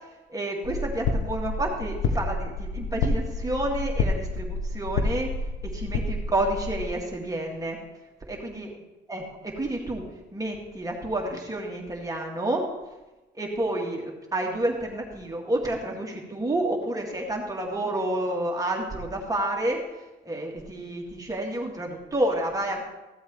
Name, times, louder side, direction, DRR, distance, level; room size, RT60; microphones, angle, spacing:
voice 1, 0.3-5.3 5.6-7.8 8.3-8.7 9.1-10.0 10.3-12.7 13.4-19.8 20.2-22.8, right 1 dB, 20° right, -1 dB, 2.0 m, -29 dB
sound 1, 0.6-6.9, left 3 dB, 90° left, 0.9 m, -29 dB
14.5 x 7.8 x 3.2 m, 1.1 s
cardioid pair, 90°, 20 cm